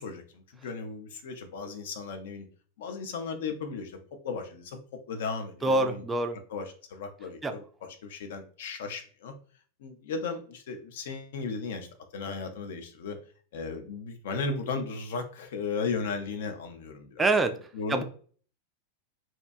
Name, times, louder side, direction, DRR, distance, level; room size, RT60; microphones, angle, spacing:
voice 1, 0.0-2.5 2.8-6.0 6.5-9.4 9.8-11.9 12.1-13.2 13.5-17.3 17.7-18.0, left 4 dB, 55° left, 6 dB, 0.4 m, -36 dB
voice 2, 5.6-6.4 7.4-7.6 17.2-17.6 17.9-18.0, right 2 dB, 15° right, 8 dB, 0.3 m, -25 dB
2.6 x 2.2 x 2.4 m, 0.43 s
figure-of-eight pair, 90°, 0 cm